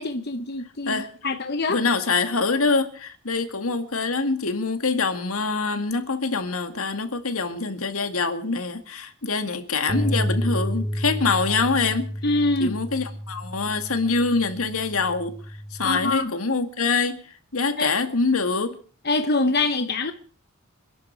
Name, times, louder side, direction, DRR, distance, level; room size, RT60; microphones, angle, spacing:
voice 1, 0.0-1.8 9.2-9.3 12.2-12.8 15.8-16.3 17.8-17.9 19.0-20.1, left 2 dB, 45° left, 1.1 m, -24 dB
voice 2, 0.9-1.4 1.7-12.1 12.6-15.4 15.7-17.2 17.5-18.8, left 4 dB, 80° left, 2.1 m, -25 dB
Bass guitar, 9.9-16.1, equal, 5° left, 2.7 m, -30 dB
27.0 x 11.0 x 4.7 m
head